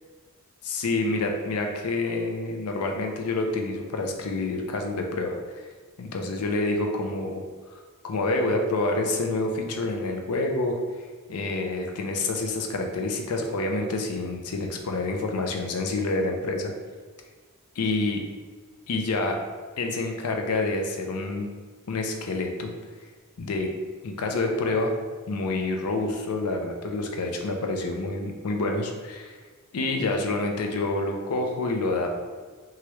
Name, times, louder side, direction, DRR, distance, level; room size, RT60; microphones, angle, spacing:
voice 1, 0.6-5.6 6.0-7.4 8.0-10.8 11.3-16.7 17.8-18.2 18.9-19.4 19.8-21.5 21.9-22.7 23.4-23.7 24.0-24.9 25.3-29.4 29.7-32.1, left 2 dB, 80° left, 3 dB, 0.5 m, -27 dB
3.0 x 2.3 x 3.1 m, 1.5 s
head